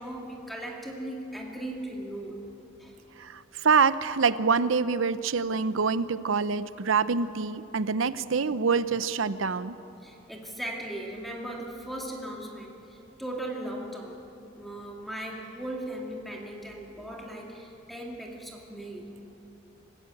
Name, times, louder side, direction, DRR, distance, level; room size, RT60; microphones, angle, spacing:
voice 1, 0.0-2.4 2.8-3.0 10.0-14.2 14.6-19.1, right 1 dB, ahead, -1 dB, 2.2 m, -38 dB
voice 2, 3.2-9.8, right 5 dB, 85° right, 14 dB, 0.7 m, -26 dB
26.0 x 15.0 x 8.6 m, 2.8 s
head